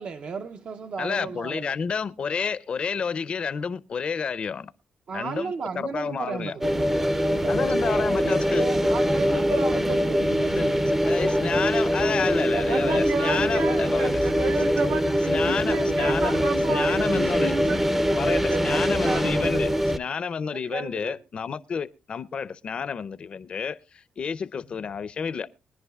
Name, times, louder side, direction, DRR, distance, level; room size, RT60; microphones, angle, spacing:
voice 1, 0.0-1.7 5.1-11.0 12.0-14.4, right 5 dB, 50° right, 0.6 m, -35 dB
voice 2, 1.0-4.7 5.1-6.6 7.5-8.6 10.6-10.7 11.0-14.1 15.3-16.4 16.7-17.5 18.2-19.7 20.0-25.5, left 6 dB, 45° left, 0.5 m, -30 dB
sound 1, 6.6-20.0, equal, 10° right, 0.5 m, -23 dB
voice 3, 12.7-19.8 20.5-21.1, right 4 dB, 80° right, 2.5 m, -32 dB
23.0 x 10.5 x 2.3 m
cardioid pair, 115°, 3 cm